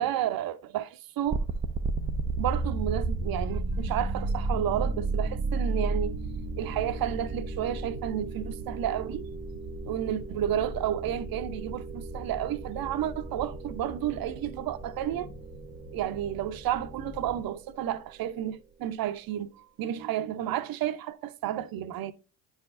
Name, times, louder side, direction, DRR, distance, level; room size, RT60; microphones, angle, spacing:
voice 1, 0.0-1.4 2.4-6.1 6.6-9.3 9.9-15.3 15.9-22.1, right 11 dB, 45° right, 0.7 m, -31 dB
sound 1, 1.2-17.4, left 3 dB, 20° left, 1.2 m, -42 dB
sound 2, 1.3-18.2, right 3 dB, 20° right, 0.3 m, -34 dB
9.5 x 4.8 x 2.5 m
hypercardioid pair, 70°, 48 cm